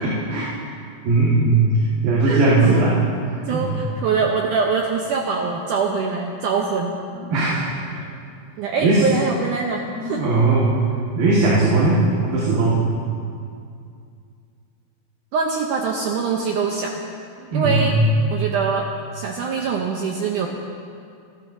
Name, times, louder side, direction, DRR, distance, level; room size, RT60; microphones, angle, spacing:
voice 1, 0.0-0.5 1.0-1.7 2.0-2.9 3.5-3.7 7.1-7.7 8.8-9.0 9.9-10.8 11.1-12.8 17.4-18.0, right 3 dB, 65° right, -7 dB, 3.4 m, -18 dB
voice 2, 2.3-2.9 3.5-7.0 8.6-10.2 15.3-17.0 17.5-18.0 18.3-20.5, right 5 dB, 85° right, 1 dB, 1.8 m, -23 dB
27.0 x 12.5 x 2.7 m, 2.4 s
omnidirectional pair, 4.6 m